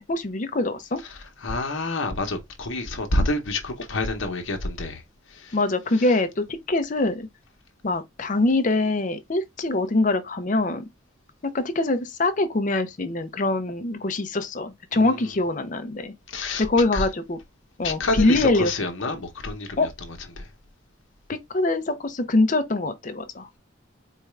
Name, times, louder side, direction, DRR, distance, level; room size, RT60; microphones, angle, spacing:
voice 1, 0.0-1.0 5.5-7.3 7.8-10.8 11.4-16.1 16.6-17.4 17.8-18.7 19.8-19.9 21.3-23.5, left 2 dB, 40° left, 0.6 m, -24 dB
voice 2, 1.1-5.0 5.3-5.6 6.0-6.1 14.9-15.2 16.3-16.6 16.9-17.1 17.8-19.9 20.4-20.5, left 2 dB, 70° left, 1.0 m, -28 dB
4.5 x 2.3 x 3.2 m
head